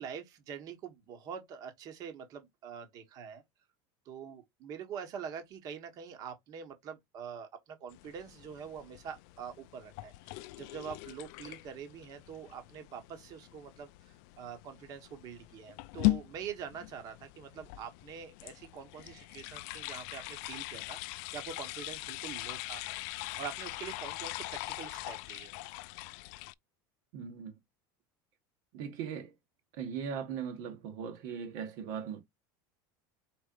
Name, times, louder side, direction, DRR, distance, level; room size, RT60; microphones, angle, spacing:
voice 1, 0.0-3.4 4.1-13.9 14.4-21.0 21.3-22.8 23.4-25.5, right 7 dB, 35° right, 1.2 m, -45 dB
sound 1, 7.9-26.5, left 20 dB, 55° left, 0.4 m, -40 dB
voice 2, 27.1-27.6 28.7-29.3 29.7-32.2, right 7 dB, 55° right, 1.3 m, -39 dB
4.9 x 4.3 x 2.5 m
cardioid pair, 175°, 11 cm